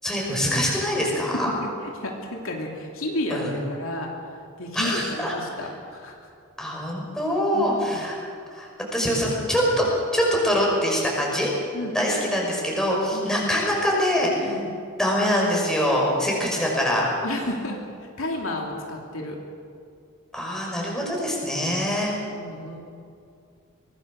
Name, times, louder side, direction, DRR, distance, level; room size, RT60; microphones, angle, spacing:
voice 1, 0.0-1.5 3.3-3.5 4.7-5.3 6.6-8.2 8.5-9.9 10.1-11.5 11.9-14.6 15.0-17.1 20.3-22.2, equal, 5° left, -3 dB, 5.7 m, -24 dB
voice 2, 1.3-3.4 3.7-4.3 4.6-6.3 7.5-8.0 11.7-12.1 13.1-13.4 14.4-14.7 17.2-17.8 18.2-19.4 21.4-21.7 22.3-22.8, left 1 dB, 70° left, 0 dB, 2.9 m, -32 dB
24.0 x 19.5 x 6.5 m, 2.5 s
head